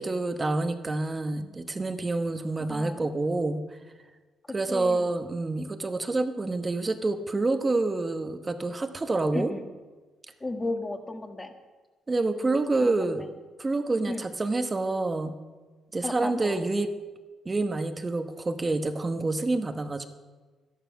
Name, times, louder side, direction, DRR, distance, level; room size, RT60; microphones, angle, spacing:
voice 1, 0.0-3.6 4.5-9.5 12.1-13.3 13.6-15.3 15.9-16.9 17.4-20.1, right 2 dB, 25° right, 8 dB, 1.0 m, -27 dB
voice 2, 2.7-3.1 4.7-5.0 9.3-9.7 10.4-11.5 12.8-13.3 14.1-14.2 16.0-16.6, left 2 dB, 20° left, 6 dB, 1.5 m, -34 dB
13.0 x 11.0 x 5.9 m, 1.3 s
cardioid pair, 90°, 0 cm